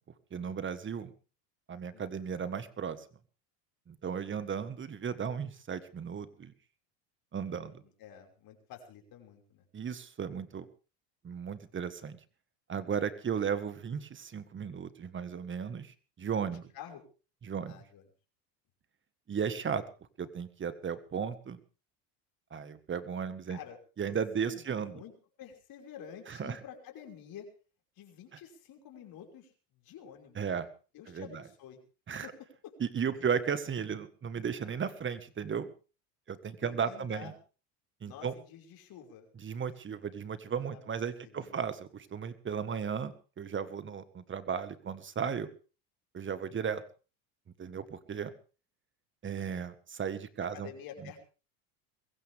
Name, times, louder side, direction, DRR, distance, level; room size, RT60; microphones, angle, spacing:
voice 1, 0.3-1.1 1.7-3.1 3.9-6.5 7.3-7.8 9.7-10.7 11.2-12.2 12.7-16.7 17.4-17.8 19.3-19.8 20.2-21.6 22.5-23.6 24.0-25.0 26.3-26.6 30.4-30.7 31.1-31.4 32.1-32.3 32.8-35.7 36.3-37.3 38.0-38.3 39.4-45.5 46.1-46.8 47.6-48.3 49.2-50.7 51.0-51.1, right 7 dB, 25° right, 12 dB, 1.8 m, -35 dB
voice 2, 7.5-9.6 16.5-17.0 17.7-18.0 23.5-23.8 24.1-24.2 24.4-25.1 25.4-27.5 28.0-30.5 30.9-31.8 32.2-32.8 33.1-33.3 36.6-37.3 38.1-39.3 39.6-39.7 40.7-41.6 50.4-51.2, left 8 dB, 50° left, 2 dB, 5.9 m, -49 dB
23.0 x 15.0 x 3.7 m, 0.36 s
supercardioid pair, 110°, 45 cm